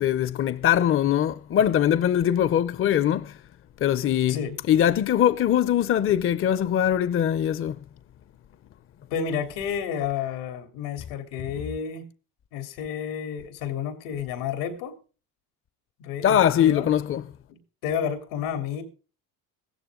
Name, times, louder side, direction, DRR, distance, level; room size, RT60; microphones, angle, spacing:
voice 1, 0.0-3.4 3.8-4.4 4.7-7.8 16.2-17.2, left 10 dB, 35° left, 0.7 m, -22 dB
voice 2, 9.1-12.1 12.5-14.9 16.0-16.9 17.5-18.8, left 8 dB, 90° left, 3.5 m, -31 dB
16.5 x 14.5 x 3.8 m
cardioid pair, 120°, 39 cm